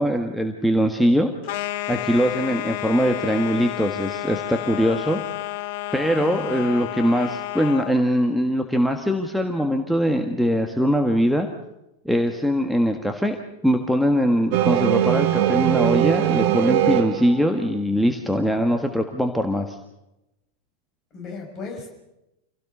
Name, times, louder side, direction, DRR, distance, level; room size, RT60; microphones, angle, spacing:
voice 1, 0.0-1.3 1.9-5.2 5.9-11.5 12.0-13.4 13.6-19.8, equal, ahead, 5 dB, 1.6 m, -22 dB
sound 1, 1.4-8.0, left 16 dB, 50° left, 0.9 m, -31 dB
voice 2, 6.1-6.6 21.1-21.9, left 4 dB, 35° left, 3 dB, 5.6 m, -36 dB
sound 2, 14.5-17.6, right 13 dB, 45° right, 1.2 m, -21 dB
27.0 x 17.5 x 6.8 m, 0.92 s
figure-of-eight pair, 90°, 0 cm